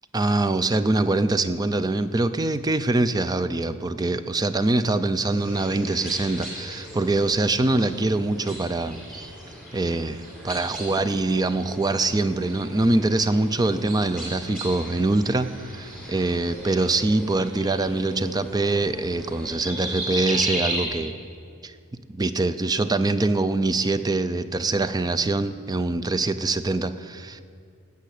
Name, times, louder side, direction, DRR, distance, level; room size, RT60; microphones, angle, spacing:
voice 1, 0.1-9.3 9.7-21.1 21.6-21.7 22.1-27.4, right 2 dB, 20° right, 12 dB, 0.4 m, -24 dB
sound 1, 5.3-20.8, equal, ahead, 4.4 m, -36 dB
18.0 x 6.8 x 8.3 m, 2.3 s
head